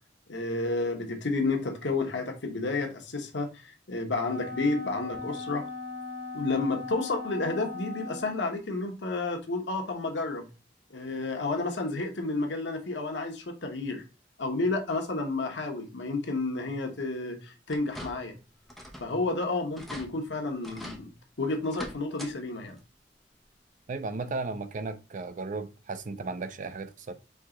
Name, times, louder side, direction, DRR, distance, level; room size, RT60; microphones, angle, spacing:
voice 1, 0.3-5.7 6.3-10.5 10.9-14.0 14.4-18.3 19.0-21.1 21.4-22.8, left 3 dB, 80° left, 1.0 m, -31 dB
Wind instrument woodwind instrument, 4.2-8.5, left 3 dB, 75° right, 2.2 m, -38 dB
sound 1, 17.7-18.4 18.7-19.1 19.4-19.5 19.7-20.1 20.6-21.0 21.6-22.3 22.7-22.8 24.2-24.3 24.8-24.9, equal, ahead, 0.8 m, -42 dB
voice 2, 23.9-27.1, right 3 dB, 45° right, 0.5 m, -35 dB
4.6 x 2.9 x 3.6 m
head